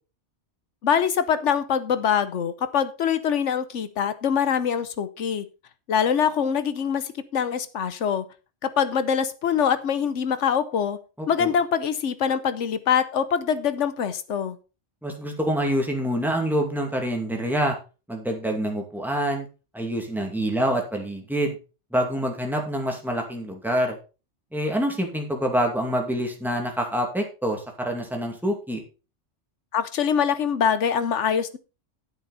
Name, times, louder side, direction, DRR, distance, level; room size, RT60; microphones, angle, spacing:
voice 1, 0.8-5.5 5.9-8.2 8.6-11.0 11.3-14.6 29.7-31.6, left 7 dB, 85° left, 13 dB, 1.2 m, -24 dB
voice 2, 11.2-11.5 15.0-17.8 18.1-19.5 19.7-21.6 21.9-24.0 24.5-28.8, equal, ahead, 1 dB, 2.2 m, -26 dB
9.7 x 8.3 x 4.1 m, 0.32 s
omnidirectional pair, 1.2 m